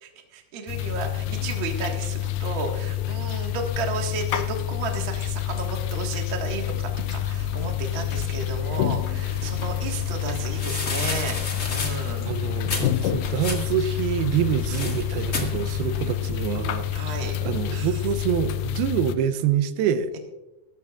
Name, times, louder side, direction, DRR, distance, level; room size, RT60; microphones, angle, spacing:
voice 1, 0.0-11.4 11.7-12.3 16.9-17.4 17.7-18.0, right 4 dB, 50° right, 2 dB, 1.6 m, -33 dB
sound 1, 0.7-19.2, left 13 dB, 85° left, 1.9 m, -28 dB
sound 2, 0.9-18.9, equal, 10° right, 1.4 m, -42 dB
sound 3, 9.2-16.1, left 3 dB, 45° left, 0.9 m, -34 dB
voice 2, 12.3-20.1, right 9 dB, 85° right, 11 dB, 2.6 m, -26 dB
18.0 x 14.0 x 2.4 m, 1.0 s
omnidirectional pair, 4.4 m